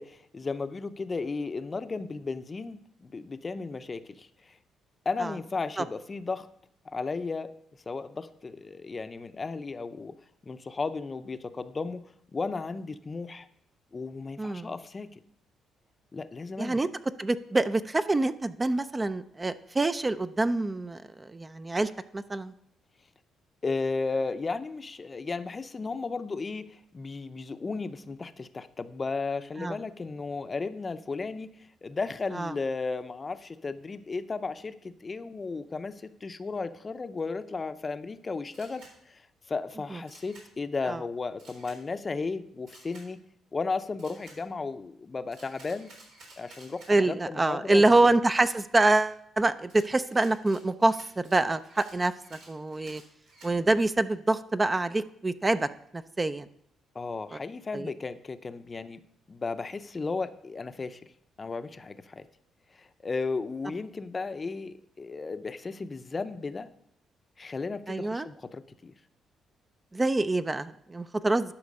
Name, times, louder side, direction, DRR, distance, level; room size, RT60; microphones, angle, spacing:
voice 1, 0.0-4.6 5.1-6.5 6.9-7.5 7.9-10.1 10.4-12.0 12.3-13.5 13.9-15.1 16.1-16.8 23.6-31.5 31.8-43.2 43.5-45.9 46.4-48.1 56.9-59.0 59.3-61.1 61.4-62.3 62.7-66.7 67.4-68.9, left 4 dB, 30° left, 11 dB, 0.6 m, -34 dB
voice 2, 14.4-14.7 16.6-16.9 17.2-22.5 29.6-29.7 32.3-32.5 39.9-40.0 40.9-41.0 46.9-53.0 53.4-56.5 57.3-57.4 57.7-57.9 67.9-68.3 69.9-71.5, right 2 dB, 20° right, 12 dB, 0.4 m, -26 dB
Camera, 38.5-38.9 40.1-40.5 41.4-41.8 42.7-43.1 44.0-44.4 45.3-46.9 48.4-49.1 49.7-53.5, right 2 dB, 85° right, 4.0 m, -53 dB
11.5 x 5.8 x 5.3 m, 0.70 s
cardioid pair, 90°, 0 cm